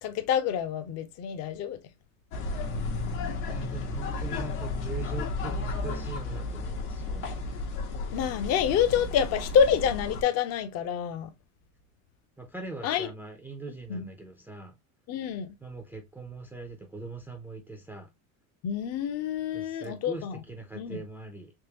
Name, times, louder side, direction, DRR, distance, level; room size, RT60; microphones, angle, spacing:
voice 1, 0.0-1.8 8.1-11.3 12.8-13.1 13.9-14.1 15.1-15.5 18.6-20.4 20.7-21.0, left 8 dB, 40° left, 0.6 m, -27 dB
sound 1, 2.3-10.2, left 3 dB, 90° left, 1.3 m, -33 dB
voice 2, 3.5-7.3 12.4-14.7 15.6-18.1 19.5-21.5, right 3 dB, 5° right, 0.4 m, -41 dB
3.6 x 3.3 x 2.8 m
cardioid pair, 150°, 40 cm